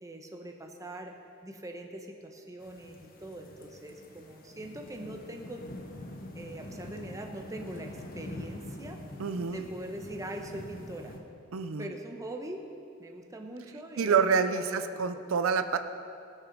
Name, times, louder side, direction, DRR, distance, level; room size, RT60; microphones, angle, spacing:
voice 1, 0.0-5.7 6.3-9.1 9.5-11.2 11.8-12.7 13.0-14.3 14.5-15.2, right 1 dB, 15° right, 3 dB, 0.9 m, -42 dB
sound 1, 2.6-11.2, left 1 dB, 45° left, 1.1 m, -45 dB
voice 2, 9.2-9.6 11.5-11.9 14.0-15.8, right 5 dB, 85° right, 9 dB, 0.5 m, -27 dB
18.5 x 6.4 x 5.2 m, 2.5 s
head